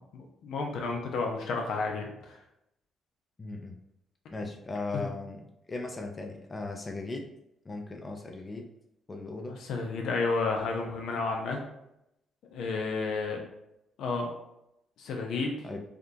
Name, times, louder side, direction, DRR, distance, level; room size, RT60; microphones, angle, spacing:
voice 1, 0.1-2.4 4.9-5.1 9.5-11.6 12.5-13.4 14.0-14.3 15.0-15.6, left 4 dB, 75° left, 1 dB, 0.6 m, -31 dB
voice 2, 3.4-3.8 4.3-7.3 7.7-8.7 9.1-9.6 15.6-15.8, left 3 dB, 25° left, 2 dB, 0.4 m, -37 dB
3.5 x 2.3 x 2.7 m, 0.83 s
cardioid pair, 90°, 0 cm